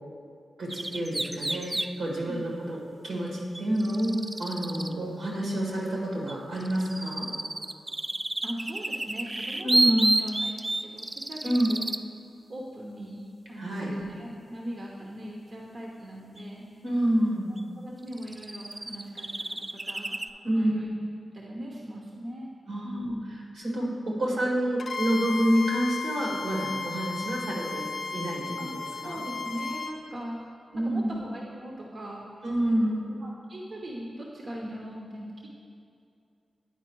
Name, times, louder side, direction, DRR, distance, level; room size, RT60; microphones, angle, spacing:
voice 1, 0.6-2.8 3.0-7.3 9.6-10.2 11.4-11.7 13.6-13.9 16.8-17.5 20.4-20.7 22.7-23.1 23.6-28.4 28.7-29.2 30.7-31.2 32.4-33.1, right 1 dB, 85° right, -3 dB, 1.7 m, -28 dB
sound 1, 0.7-1.9 3.5-4.9 6.3-12.0 16.4-16.5 17.6-17.7 18.1-20.3, right 2 dB, 25° right, 0.3 m, -30 dB
voice 2, 8.4-11.8 12.5-13.2 13.5-16.6 17.8-20.2 20.5-20.9 21.3-22.5 22.8-23.2 28.6-28.7 29.0-32.3 33.0-35.5, equal, 60° right, -2 dB, 0.9 m, -40 dB
Bowed string instrument, 24.8-30.0, left 4 dB, 60° left, 0.5 m, -35 dB
9.5 x 4.4 x 4.6 m, 2.5 s
cardioid pair, 45°, 0 cm